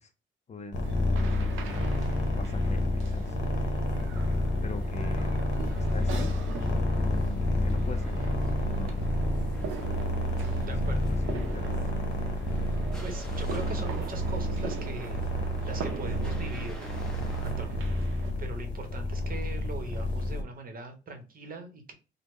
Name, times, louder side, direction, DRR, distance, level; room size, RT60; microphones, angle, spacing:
voice 1, 0.5-0.8 1.1-1.9 2.4-3.8 4.6-5.3 5.9-6.4 7.0-8.3 8.7-9.0 9.5-9.7 10.6-11.8 12.2-12.5, left 4 dB, 35° left, 8 dB, 0.5 m, -43 dB
sound 1, 0.7-20.4, left 1 dB, 60° left, 0.8 m, -29 dB
sound 2, 0.8-18.3, right 5 dB, 90° right, 0.7 m, -42 dB
sound 3, 5.7-17.5, equal, 5° left, 0.9 m, -46 dB
voice 2, 10.6-11.1 13.0-15.2 15.6-17.1 17.4-17.8 18.4-21.9, right 3 dB, 45° right, 5 dB, 0.9 m, -41 dB
3.4 x 2.2 x 3.1 m, 0.31 s
cardioid pair, 90°, 20 cm